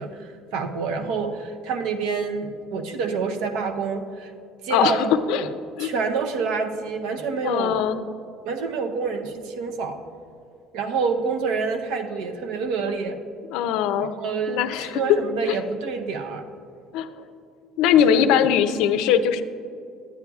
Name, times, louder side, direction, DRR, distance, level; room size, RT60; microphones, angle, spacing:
voice 1, 0.0-4.3 4.6-5.5 5.8-7.8 8.4-10.0 10.7-13.2 14.2-16.4 18.0-18.3, right 5 dB, 85° right, 6 dB, 0.7 m, -27 dB
voice 2, 4.7-5.5 5.8-5.9 7.4-8.0 13.5-14.1 14.5-15.0 15.5-15.6 16.9-17.1 17.8-19.4, left 9 dB, 80° left, 11 dB, 0.4 m, -21 dB
9.3 x 9.1 x 2.3 m, 2.5 s
cardioid pair, 155°, 0 cm